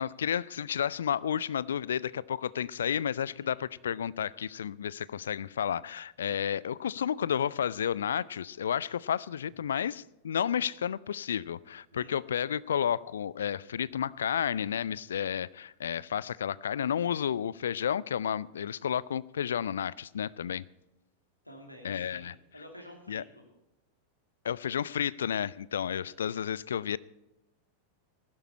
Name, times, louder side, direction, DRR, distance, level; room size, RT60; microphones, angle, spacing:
voice 1, 0.0-20.6 21.8-22.3 23.1-23.2 24.4-27.0, left 8 dB, 65° left, 21 dB, 0.3 m, -31 dB
voice 2, 21.4-23.4 26.0-26.2, left 1 dB, 85° left, 1 dB, 2.7 m, -50 dB
15.5 x 12.0 x 4.3 m, 0.98 s
figure-of-eight pair, 90°, 0 cm